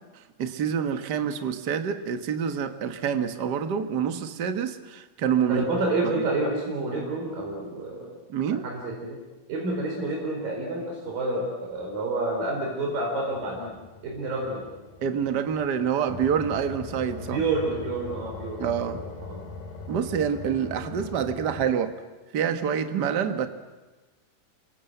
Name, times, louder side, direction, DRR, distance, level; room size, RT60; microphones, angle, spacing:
voice 1, 0.4-5.7 6.0-6.1 8.3-8.6 15.0-17.4 18.6-19.0 19.9-22.0 22.3-23.5, right 7 dB, 50° right, 8 dB, 1.3 m, -27 dB
voice 2, 5.5-8.1 8.5-9.2 9.5-13.8 14.0-14.6 17.2-19.0 19.3-19.4, right 2 dB, 80° right, -1 dB, 6.3 m, -29 dB
sound 1, 13.3-21.7, left 3 dB, 75° left, 4.5 m, -41 dB
29.0 x 25.0 x 8.0 m, 1.2 s
omnidirectional pair, 3.9 m